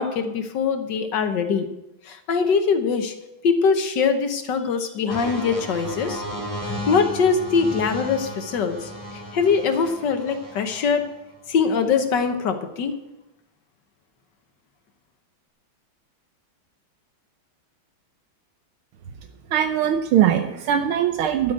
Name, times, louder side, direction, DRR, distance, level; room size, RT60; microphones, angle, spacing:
voice 1, 0.0-1.7 2.1-3.1 3.4-6.2 6.6-11.1 11.5-12.9, left 5 dB, 60° left, 7 dB, 1.6 m, -22 dB
sound 1, 5.1-11.1 11.9-12.1, equal, 15° right, 1.7 m, -34 dB
voice 2, 19.5-21.5, right 10 dB, 85° right, 6 dB, 1.7 m, -21 dB
12.5 x 6.4 x 8.8 m, 0.92 s
omnidirectional pair, 2.3 m